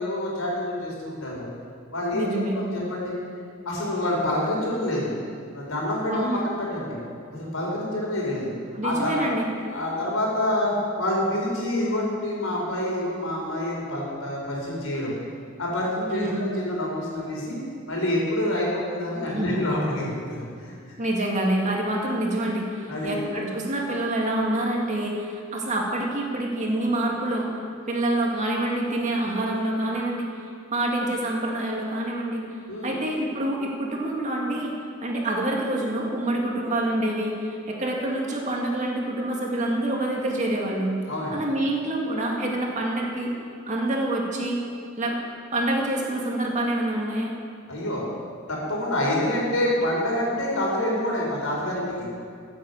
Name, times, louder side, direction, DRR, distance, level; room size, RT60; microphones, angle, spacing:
voice 1, 0.0-1.5 1.9-2.3 2.5-3.2 3.6-5.1 5.5-6.2 6.4-7.0 7.3-8.5 8.8-9.2 9.7-15.1 15.6-17.6 17.9-20.7 22.9-23.2 32.7-33.0 41.1-41.4 47.7-48.1 48.5-52.1, left 1 dB, 80° left, -3 dB, 4.5 m, -27 dB
voice 2, 2.1-2.6 6.1-6.4 8.7-9.5 16.1-16.5 19.3-19.6 21.0-27.6 27.9-30.4 30.7-32.4 32.8-34.7 35.0-40.9 41.3-43.3 43.7-44.6 45.0-45.2 45.5-47.3, right 1 dB, 35° right, -1 dB, 2.3 m, -26 dB
15.0 x 8.5 x 8.1 m, 2.2 s
head